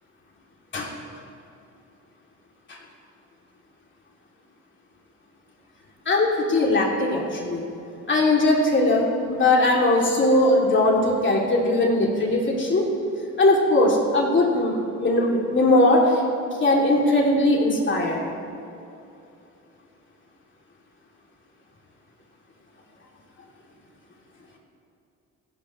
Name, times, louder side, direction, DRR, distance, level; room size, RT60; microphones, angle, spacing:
voice 1, 6.0-7.6 8.1-12.9 13.4-16.2 16.6-18.2, left 2 dB, 40° left, -2 dB, 2.8 m, -20 dB
17.5 x 16.0 x 3.2 m, 2.7 s
cardioid pair, 90°, 30 cm